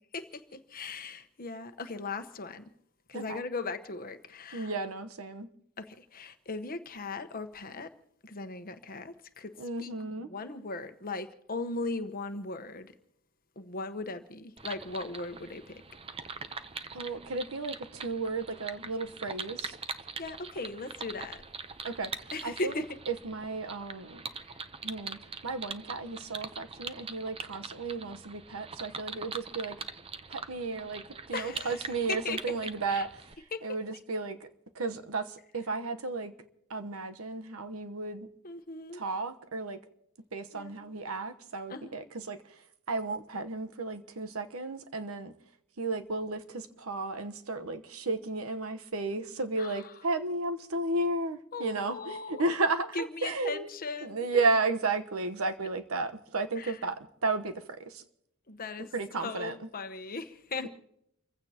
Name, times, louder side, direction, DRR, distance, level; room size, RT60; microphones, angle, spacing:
voice 1, 0.1-2.7 3.1-4.7 5.8-7.9 8.2-9.5 9.8-9.9 10.3-12.9 13.6-15.8 20.2-21.4 22.3-22.8 24.5-24.6 31.3-31.8 32.1-32.4 32.9-33.0 33.5-33.6 38.4-39.0 40.5-40.8 41.7-42.0 49.6-49.8 51.5-52.5 52.9-54.3 56.6-56.8 58.5-58.9 59.2-60.7, left 3 dB, 40° left, 1.1 m, -38 dB
voice 2, 4.5-5.5 9.6-10.3 16.9-19.8 21.8-22.1 22.4-22.7 23.1-24.2 24.8-25.2 25.4-29.8 30.3-31.0 31.3-33.3 33.6-34.5 34.7-36.3 36.7-38.3 38.9-39.8 40.3-45.3 45.8-53.7 54.0-58.0 58.9-59.7, right 3 dB, 70° right, 1.1 m, -33 dB
sound 1, 14.6-33.3, right 5 dB, 25° right, 0.7 m, -43 dB
30.0 x 15.5 x 2.9 m
head